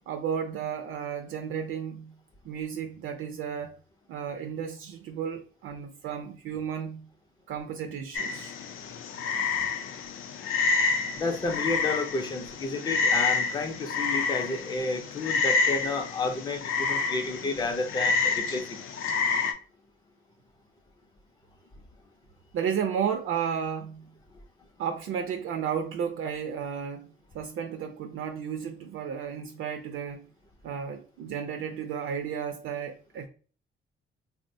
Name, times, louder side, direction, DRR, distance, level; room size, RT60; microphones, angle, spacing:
voice 1, 0.1-2.1 2.4-3.7 4.1-7.1 7.5-8.5 22.5-24.1 24.8-30.3 30.6-33.3, right 7 dB, 75° right, 0.4 m, -33 dB
Frog, 8.1-19.5, left 4 dB, 80° left, 0.5 m, -28 dB
voice 2, 11.1-18.8, left 3 dB, 20° left, 0.4 m, -31 dB
3.5 x 2.1 x 2.5 m
cardioid pair, 155°, 21 cm